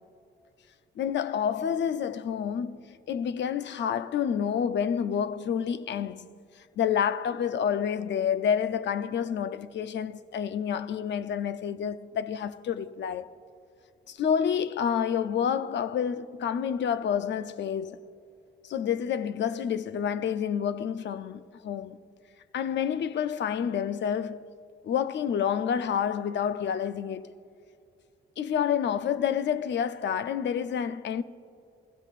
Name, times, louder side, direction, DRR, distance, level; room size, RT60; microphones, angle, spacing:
voice 1, 1.0-6.3 6.8-13.3 14.1-18.0 18.6-22.0 22.5-24.5 24.8-27.3 28.4-31.2, left 8 dB, 70° left, 0.6 m, -29 dB
26.0 x 16.0 x 2.5 m
cardioid pair, 70°, 19 cm